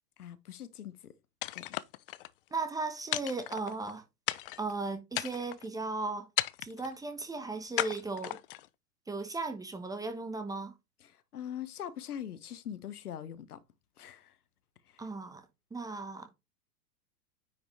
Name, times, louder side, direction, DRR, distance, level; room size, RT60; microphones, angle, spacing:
voice 1, 0.2-1.1 1.5-1.8 11.0-13.6 14.0-14.4 14.9-15.0, left 10 dB, 65° left, 1.1 m, -42 dB
sound 1, 1.4-2.3 3.1-3.9 4.3-4.7 5.1-5.7 6.4-6.9 7.8-8.7, left 16 dB, 35° left, 0.4 m, -35 dB
voice 2, 2.5-4.0 4.6-6.3 6.6-8.4 9.1-10.7 15.0-15.4 15.7-16.3, right 3 dB, 5° right, 1.0 m, -36 dB
9.5 x 5.1 x 3.2 m
figure-of-eight pair, 100°, 48 cm